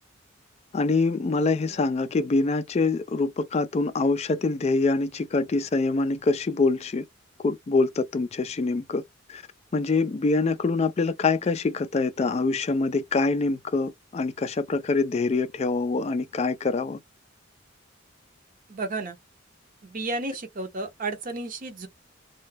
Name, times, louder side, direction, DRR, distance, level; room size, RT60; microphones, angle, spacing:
voice 1, 0.7-7.0 7.4-9.0 9.3-9.4 9.7-17.0, left 3 dB, 30° left, 0.3 m, -25 dB
voice 2, 18.7-19.2 19.8-21.9, right 2 dB, 45° right, 0.6 m, -32 dB
2.2 x 2.0 x 3.2 m
head